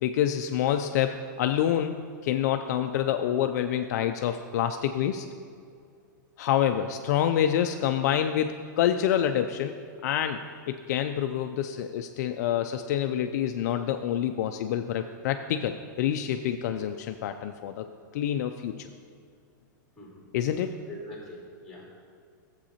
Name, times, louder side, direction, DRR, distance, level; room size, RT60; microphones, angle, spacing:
voice 1, 0.0-5.3 6.4-9.7 10.0-10.4 10.7-17.9 18.1-18.9 20.3-20.7, left 10 dB, 55° left, 7 dB, 0.4 m, -27 dB
voice 2, 20.9-22.0, left 1 dB, 5° left, -5 dB, 2.3 m, -43 dB
11.5 x 7.6 x 2.8 m, 2.2 s
supercardioid pair, 155°, 11 cm